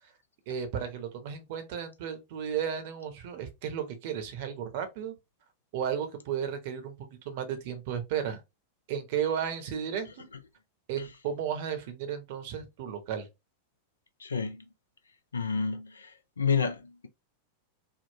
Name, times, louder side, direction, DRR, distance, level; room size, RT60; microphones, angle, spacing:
voice 1, 0.5-5.1 5.7-7.0 7.2-8.4 8.9-10.3 10.9-13.3, right 8 dB, 50° right, 0.8 m, -34 dB
voice 2, 14.2-14.6 15.3-16.1 16.4-17.1, left 5 dB, 75° left, 0.4 m, -29 dB
3.6 x 2.1 x 2.7 m
figure-of-eight pair, 90°, 0 cm